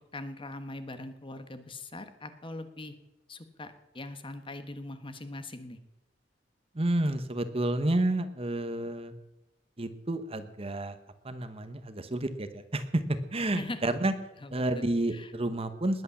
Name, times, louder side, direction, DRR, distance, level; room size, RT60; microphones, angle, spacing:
voice 1, 0.1-2.9 3.3-5.8 13.5-13.8 14.4-14.8 15.1-15.3, left 2 dB, 30° left, 9 dB, 1.3 m, -41 dB
voice 2, 6.7-9.1 9.8-11.0 11.2-14.1 14.5-16.0, right 1 dB, 30° right, 10 dB, 1.1 m, -30 dB
20.0 x 8.5 x 7.2 m, 0.92 s
head